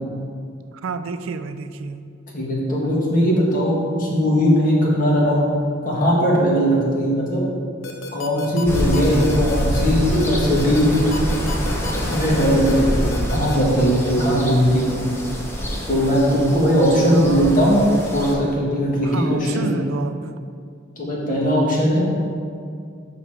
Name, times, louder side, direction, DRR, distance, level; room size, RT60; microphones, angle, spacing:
voice 1, 0.8-2.1 17.1-17.6 19.0-20.3, right 4 dB, 80° right, 10 dB, 0.4 m, -30 dB
voice 2, 2.3-5.4 5.9-7.4 8.1-10.9 12.1-14.9 15.9-17.8 18.1-19.7 21.0-22.1, equal, 45° left, -5 dB, 1.8 m, -19 dB
sound 1, 7.8-13.6, left 3 dB, 75° left, 0.8 m, -32 dB
sound 2, 8.7-18.3, equal, 15° left, 0.9 m, -26 dB
6.8 x 5.5 x 4.9 m, 2.3 s
head